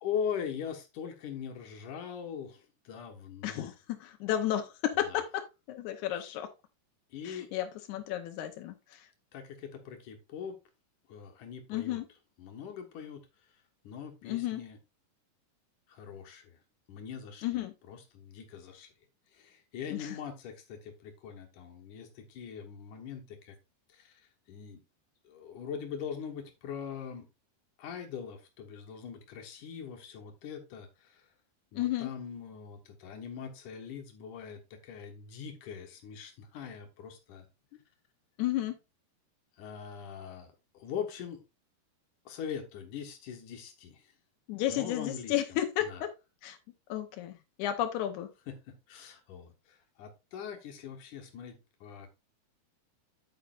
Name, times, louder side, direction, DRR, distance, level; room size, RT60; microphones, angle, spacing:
voice 1, 0.0-3.7 5.0-5.2 6.2-6.3 7.1-7.5 9.3-10.6 11.1-12.0 12.4-13.6 13.8-14.8 15.9-16.6 16.9-18.9 19.3-23.6 23.9-24.8 25.2-27.3 27.8-31.3 31.7-37.5 39.6-41.4 42.3-44.1 44.7-46.0 48.5-52.1, left 7 dB, 65° left, 2.4 m, -42 dB
voice 2, 3.4-6.5 7.2-9.1 11.7-12.0 14.2-14.6 17.4-17.7 19.9-20.2 31.8-32.1 38.4-38.8 44.5-46.1 46.4-46.6 46.9-48.3, left 12 dB, 90° left, 1.7 m, -33 dB
8.5 x 8.4 x 2.4 m
omnidirectional pair, 4.5 m